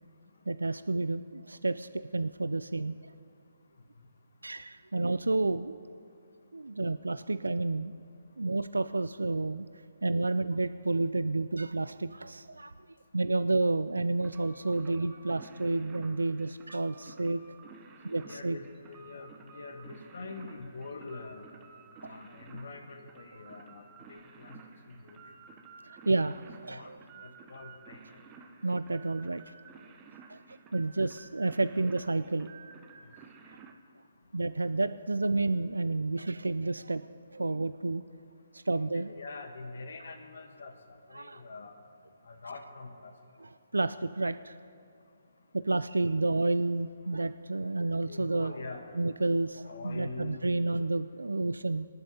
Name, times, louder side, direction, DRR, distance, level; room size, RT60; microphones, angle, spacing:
voice 1, 0.5-3.1 4.4-5.8 6.5-7.9 8.4-9.7 10.0-12.7 13.1-17.4 18.0-18.6 22.0-22.2 25.8-27.0 28.6-29.5 30.3-32.5 33.4-33.6 34.3-37.1 37.3-38.0 38.5-39.1 41.1-41.4 43.4-44.6 45.5-48.5 49.0-51.9, right 2 dB, 80° right, 12 dB, 0.3 m, -30 dB
sound 1, 14.2-33.7, right 5 dB, 20° right, 0.8 m, -53 dB
voice 2, 18.1-21.4 22.0-24.6 24.9-25.2 26.7-26.9 27.2-28.0 38.7-40.7 41.1-41.7 42.3-43.1 48.1-48.9 49.6-50.4, left 3 dB, 60° left, 6 dB, 1.2 m, -44 dB
24.5 x 11.0 x 2.9 m, 2.4 s
figure-of-eight pair, 140°, 0 cm